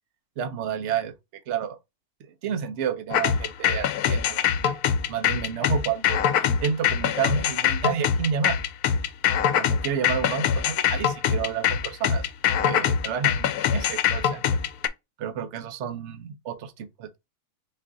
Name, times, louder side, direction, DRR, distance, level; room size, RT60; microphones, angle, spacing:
voice 1, 0.4-1.1 1.5-1.8 2.4-4.7 5.1-8.6 9.5-12.3 12.6-14.5 15.2-17.2, right 7 dB, 60° right, 0.9 m, -30 dB
sound 1, 3.1-14.9, left 8 dB, 80° left, 1.1 m, -23 dB
4.5 x 2.5 x 3.6 m
omnidirectional pair, 1.6 m